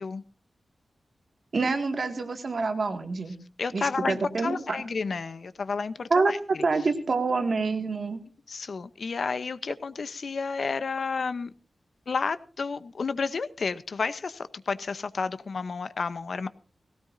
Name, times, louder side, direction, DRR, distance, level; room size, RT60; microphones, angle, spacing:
voice 1, 1.5-3.4 3.7-4.8 6.1-6.4 6.6-8.2, right 4 dB, 50° right, 2.1 m, -27 dB
voice 2, 3.6-6.6 8.5-11.5 12.1-16.5, left 4 dB, 60° left, 0.8 m, -31 dB
18.5 x 17.0 x 2.7 m
wide cardioid pair, 140°, 0 cm